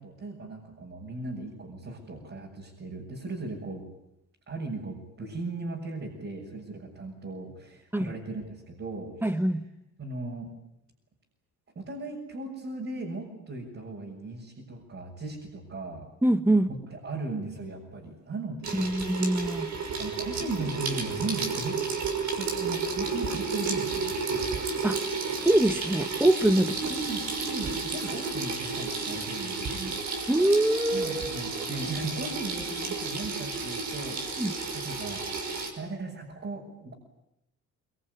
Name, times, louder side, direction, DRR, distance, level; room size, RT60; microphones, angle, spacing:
voice 1, 0.0-3.9 4.5-9.5 10.0-10.5 11.8-16.1 16.7-19.1 20.0-21.8 22.4-24.6 26.6-30.0 30.9-34.3 34.7-36.9, right 3 dB, 45° right, -2 dB, 6.9 m, -37 dB
voice 2, 9.2-9.6 16.2-16.7 18.7-19.7 24.8-25.0 25.5-26.7 30.3-31.4 34.4-34.5, right 1 dB, 5° right, 11 dB, 1.7 m, -24 dB
Water tap faucet / Sink (filling or washing), 18.6-35.7, right 4 dB, 65° right, 5.9 m, -32 dB
24.0 x 22.0 x 9.8 m, 0.84 s
cardioid pair, 90°, 30 cm